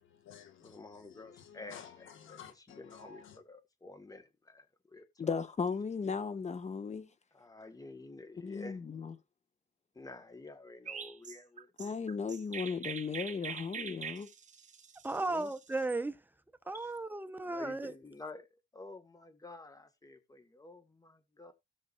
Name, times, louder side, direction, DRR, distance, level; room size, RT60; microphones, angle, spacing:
voice 1, 0.0-3.4, left 8 dB, 80° left, 1.8 m, -53 dB
voice 2, 0.6-1.8 2.3-2.4 2.8-5.1 7.3-8.8 9.9-11.7 15.3-15.5 16.7-16.9 17.5-21.5, left 2 dB, 20° left, 1.8 m, -50 dB
voice 3, 5.2-7.1 8.4-9.1 11.8-14.3, left 5 dB, 35° left, 1.4 m, -36 dB
Chirp tweet, 10.9-16.0, right 7 dB, 40° right, 1.2 m, -44 dB
voice 4, 15.0-16.2 16.7-17.9, right 2 dB, 10° right, 1.1 m, -35 dB
17.0 x 6.3 x 2.6 m
cardioid pair, 90°, 20 cm